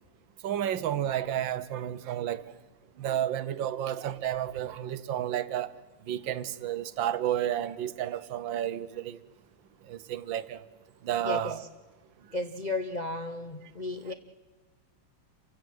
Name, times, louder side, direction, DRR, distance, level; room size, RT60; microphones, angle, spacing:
voice 1, 0.4-2.4 3.0-5.7 6.1-9.2 9.9-10.6 11.0-11.6, right 11 dB, 75° right, 1.5 m, -31 dB
voice 2, 11.2-11.7 12.3-14.1, left 2 dB, 35° left, 0.6 m, -34 dB
28.0 x 16.0 x 7.8 m
omnidirectional pair, 2.2 m